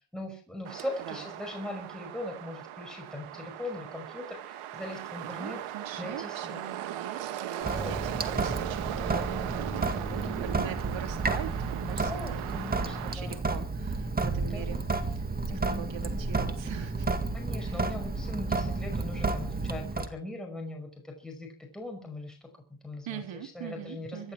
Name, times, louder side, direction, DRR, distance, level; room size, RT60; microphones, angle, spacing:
voice 1, 0.1-5.6 6.0-6.6 7.6-8.0 9.9-10.5 11.8-13.3 14.5-14.8 15.5-16.2 17.3-22.4 22.7-23.2 23.5-24.3, left 1 dB, ahead, 1 dB, 5.6 m, -40 dB
sound 1, 0.7-13.2, right 12 dB, 80° right, 2.0 m, -38 dB
voice 2, 5.2-14.8 15.1-17.1 17.6-17.8 23.1-24.3, right 9 dB, 60° right, 7 dB, 3.4 m, -42 dB
Sink (filling or washing) / Drip, 7.6-20.1, right 3 dB, 20° right, 2.0 m, -31 dB
25.0 x 10.5 x 4.7 m, 0.37 s
cardioid pair, 120°, 50 cm